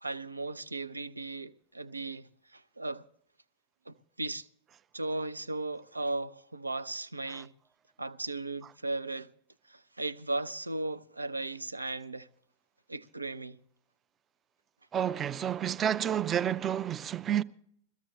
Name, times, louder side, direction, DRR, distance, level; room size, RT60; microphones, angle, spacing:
voice 1, 0.0-3.0 3.9-4.5 4.9-7.5 8.0-9.3 9.7-12.3 12.9-13.6, right 2 dB, 80° right, 0.5 m, -36 dB
voice 2, 14.9-17.4, right 9 dB, 25° right, 0.5 m, -30 dB
22.0 x 14.0 x 3.2 m
figure-of-eight pair, 90°, 0 cm